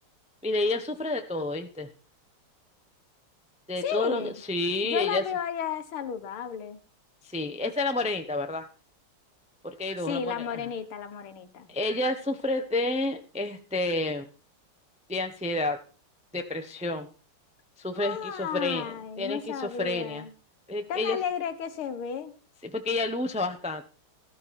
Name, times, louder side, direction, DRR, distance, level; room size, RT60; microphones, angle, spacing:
voice 1, 0.4-1.9 3.7-5.2 7.2-8.7 9.6-10.6 11.7-14.3 15.1-15.8 16.3-17.1 17.8-20.2 20.7-21.2 22.6-23.8, left 2 dB, 5° right, 7 dB, 0.5 m, -30 dB
voice 2, 3.8-4.4 4.8-6.8 10.1-11.7 18.0-20.3 20.9-22.4, left 7 dB, 75° left, 10 dB, 2.1 m, -33 dB
13.5 x 13.0 x 4.3 m, 0.35 s
omnidirectional pair, 2.4 m